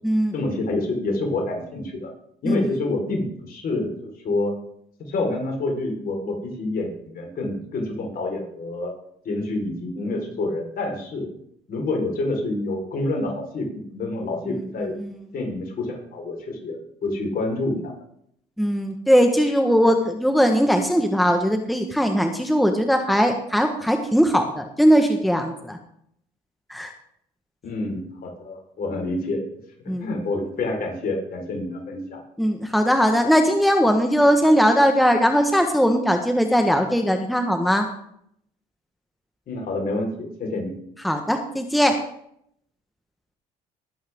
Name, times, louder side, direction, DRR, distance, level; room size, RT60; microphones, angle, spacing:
voice 1, 0.3-2.1 2.4-4.5 5.1-8.9 9.2-11.3 11.7-14.9 15.3-17.9 27.6-29.4 30.0-32.2 39.5-40.7, left 2 dB, 55° left, 1 dB, 4.4 m, -27 dB
voice 2, 14.5-15.1 18.6-25.8 26.7-26.9 29.9-30.1 32.4-37.9 41.0-42.0, equal, ahead, 4 dB, 1.4 m, -20 dB
19.5 x 8.7 x 3.7 m, 0.71 s
supercardioid pair, 80°, 18 cm